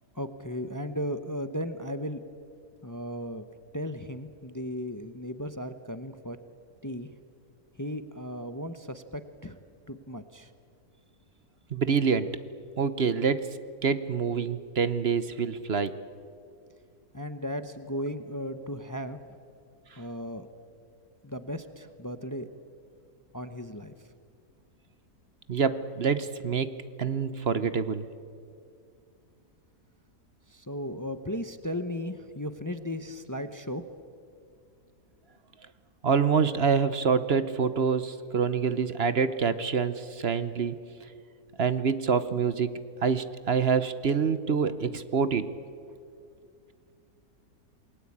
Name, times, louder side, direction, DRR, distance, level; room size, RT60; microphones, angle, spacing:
voice 1, 0.1-2.2 2.8-3.5 3.7-6.4 6.8-7.1 7.8-9.6 9.9-10.5 17.1-19.2 20.0-20.5 21.2-22.5 23.3-23.9 30.5-33.8, equal, 15° left, 10 dB, 0.8 m, -36 dB
voice 2, 11.7-12.4 12.8-13.6 13.8-16.0 25.5-28.1 36.0-40.8 41.6-45.5, right 6 dB, 45° right, 13 dB, 1.0 m, -26 dB
28.0 x 21.0 x 8.7 m, 2.3 s
omnidirectional pair, 1.7 m